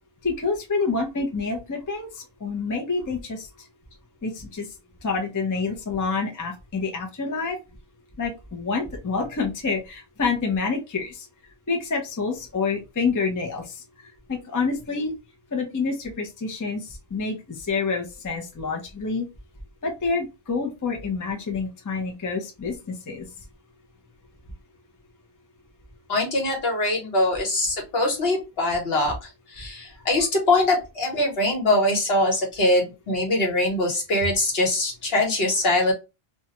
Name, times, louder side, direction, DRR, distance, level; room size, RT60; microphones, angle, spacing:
voice 1, 0.2-3.5 4.2-4.7 5.0-7.6 8.2-11.3 11.7-13.8 14.3-15.1 15.5-19.2 19.8-22.8 23.1-23.3, left 4 dB, 25° left, 2 dB, 0.5 m, -27 dB
voice 2, 26.1-35.9, left 2 dB, 70° left, 0 dB, 1.3 m, -23 dB
2.5 x 2.2 x 2.8 m, 0.26 s
omnidirectional pair, 1.0 m